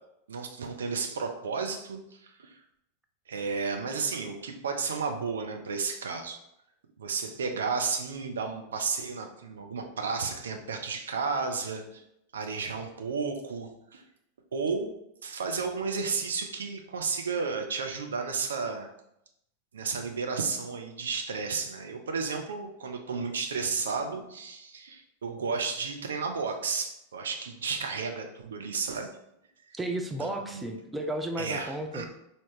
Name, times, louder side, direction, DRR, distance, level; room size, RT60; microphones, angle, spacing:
voice 1, 0.3-2.6 3.3-6.4 7.0-12.0 12.3-14.0 14.5-14.9 15.2-18.9 19.7-29.2 30.2-30.7 31.4-32.0, right 5 dB, 65° right, 4 dB, 0.6 m, -33 dB
voice 2, 29.7-32.0, right 1 dB, 10° right, 4 dB, 0.4 m, -33 dB
4.8 x 2.8 x 3.1 m, 0.81 s
figure-of-eight pair, 90°, 0 cm